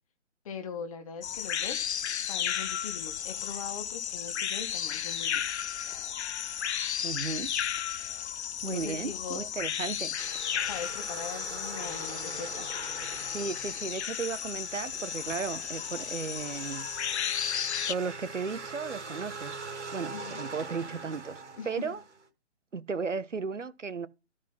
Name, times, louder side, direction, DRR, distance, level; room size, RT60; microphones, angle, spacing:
voice 1, 0.4-1.9 2.3-5.7 8.6-9.4 10.2-10.3 10.7-12.7 20.1-20.3 21.6-21.9, left 6 dB, 30° left, 1.5 m, -41 dB
sound 1, 1.2-17.9, left 9 dB, 65° left, 0.5 m, -34 dB
voice 2, 7.0-7.5 8.6-10.2 13.3-16.9 17.9-19.6 19.9-22.0 22.7-24.1, right 5 dB, 90° right, 1.1 m, -35 dB
sound 2, 10.2-22.3, right 4 dB, 70° right, 2.2 m, -43 dB
12.5 x 5.2 x 5.5 m
figure-of-eight pair, 150°, 36 cm